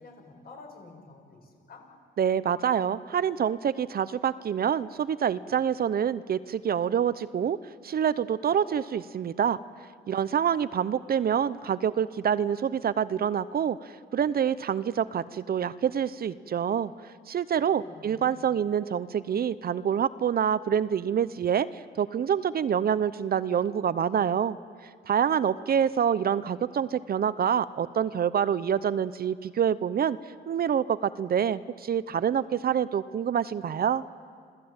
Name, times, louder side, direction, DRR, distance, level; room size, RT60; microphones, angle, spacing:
voice 1, 0.0-1.8 17.6-18.5, left 3 dB, 50° left, 2 dB, 7.2 m, -49 dB
voice 2, 2.2-7.6 7.8-9.6 10.1-16.9 17.3-24.6 25.1-30.2 30.5-34.0, right 8 dB, 50° right, 15 dB, 0.7 m, -26 dB
27.5 x 17.0 x 8.8 m, 2.1 s
cardioid pair, 90°, 20 cm